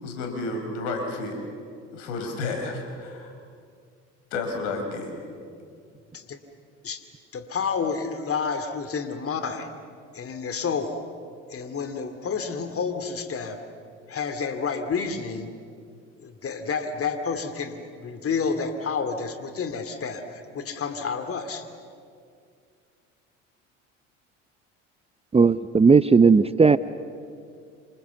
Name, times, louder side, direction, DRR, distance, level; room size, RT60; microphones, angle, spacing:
voice 1, 0.0-1.4 1.9-3.3 4.3-5.1, left 3 dB, 75° left, 4 dB, 4.7 m, -31 dB
voice 2, 7.3-9.7 10.1-11.0 11.5-13.6 14.1-15.5 16.2-21.7, left 5 dB, 35° left, 8 dB, 2.5 m, -30 dB
voice 3, 25.3-26.8, right 5 dB, 15° right, 14 dB, 0.7 m, -16 dB
27.0 x 27.0 x 7.1 m, 2.3 s
hypercardioid pair, 65°, 37 cm